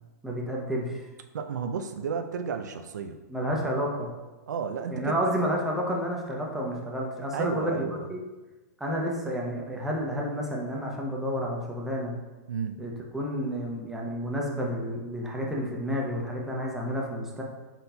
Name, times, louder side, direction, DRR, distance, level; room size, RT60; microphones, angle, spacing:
voice 1, 0.2-1.0 3.3-4.1 4.9-8.2 8.8-12.1 12.8-17.4, equal, 5° right, -2 dB, 0.6 m, -30 dB
voice 2, 1.3-3.2 3.5-3.8 4.5-5.5 7.3-8.1 12.5-12.8, right 6 dB, 85° right, 6 dB, 0.4 m, -33 dB
4.1 x 4.0 x 2.2 m, 1.2 s
hypercardioid pair, 130°, 9 cm